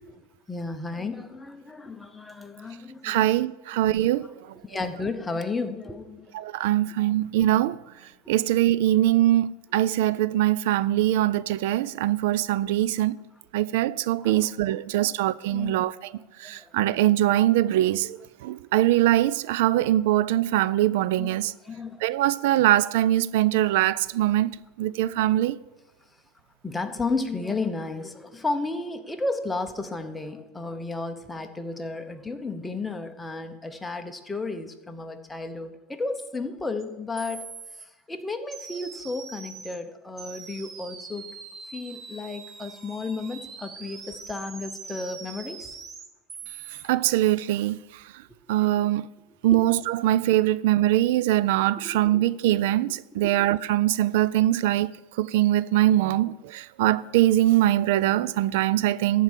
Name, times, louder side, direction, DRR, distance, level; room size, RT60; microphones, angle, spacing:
voice 1, 0.0-3.3 4.6-6.3 7.0-7.1 8.2-8.3 14.2-15.2 15.5-15.8 16.4-16.9 21.2-21.4 21.6-22.0 26.6-41.3 41.7-45.7 49.5-49.7 51.8-52.3 53.1-53.4, left 3 dB, 10° left, 0.9 m, -33 dB
voice 2, 3.0-4.3 6.3-7.8 8.3-13.2 13.5-16.1 16.4-21.5 22.0-24.5 24.8-25.6 46.8-48.0 48.5-49.1 49.4-59.2, right 14 dB, 70° right, 0.3 m, -22 dB
sound 1, 36.8-36.9 37.2-37.8 38.5-39.8 40.2-46.8, right 5 dB, 30° right, 1.2 m, -42 dB
13.0 x 4.6 x 7.4 m
supercardioid pair, 135°, 0 cm